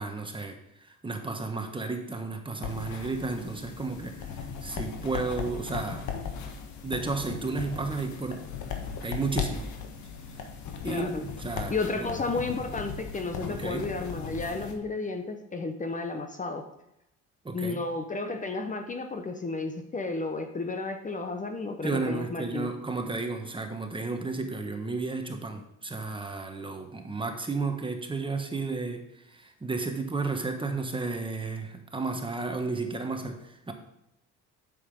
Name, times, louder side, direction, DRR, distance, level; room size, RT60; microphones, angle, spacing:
voice 1, 0.0-6.1 6.8-8.4 9.0-9.7 10.8-11.7 12.0-12.1 13.5-13.9 17.4-17.8 21.8-33.7, right 3 dB, 15° right, 5 dB, 1.3 m, -33 dB
sound 1, 2.6-14.7, left 6 dB, 70° left, 1.6 m, -37 dB
voice 2, 10.8-11.2 11.7-16.6 17.5-22.7, left 3 dB, 25° left, 6 dB, 1.0 m, -32 dB
8.4 x 7.1 x 5.4 m, 0.83 s
cardioid pair, 100°, 30 cm